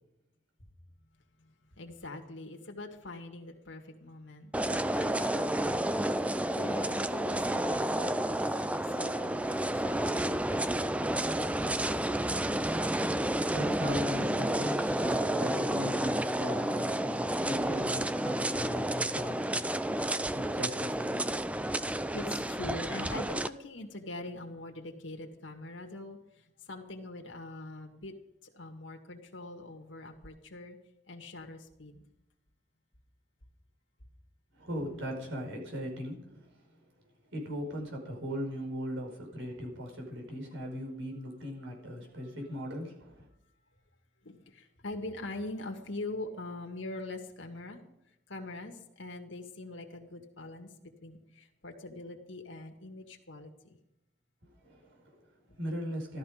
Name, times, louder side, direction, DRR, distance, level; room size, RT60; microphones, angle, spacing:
voice 1, 1.4-5.9 6.4-11.0 20.3-20.4 22.1-28.1 28.5-30.8 31.1-32.0 44.2-47.8 48.3-53.8 55.5-55.6, left 2 dB, 85° left, 3 dB, 2.0 m, -43 dB
sound 1, 4.5-23.5, right 1 dB, 5° right, 0.4 m, -30 dB
voice 2, 12.4-21.3 34.5-36.8 37.3-43.3 54.4-56.2, equal, 90° right, 1 dB, 5.2 m, -39 dB
14.5 x 13.5 x 5.1 m, 0.84 s
head